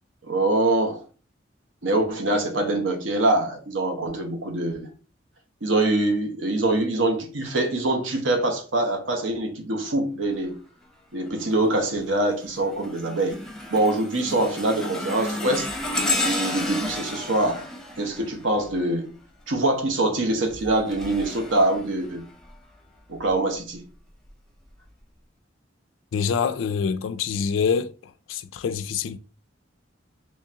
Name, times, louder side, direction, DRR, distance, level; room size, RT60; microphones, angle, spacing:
voice 1, 0.2-1.0 1.8-4.9 5.6-10.5 11.1-13.4 13.7-15.7 16.2-17.6 18.0-19.1 19.5-22.2 23.1-23.8, right 2 dB, 90° right, 0.9 m, -24 dB
sound 1, 11.4-11.8 12.3-19.1 20.3-22.5 23.2-23.4 24.3-24.4, left 1 dB, 5° left, 0.6 m, -32 dB
voice 2, 26.1-27.9 28.3-29.2, left 6 dB, 80° left, 0.3 m, -25 dB
3.7 x 3.0 x 2.8 m
head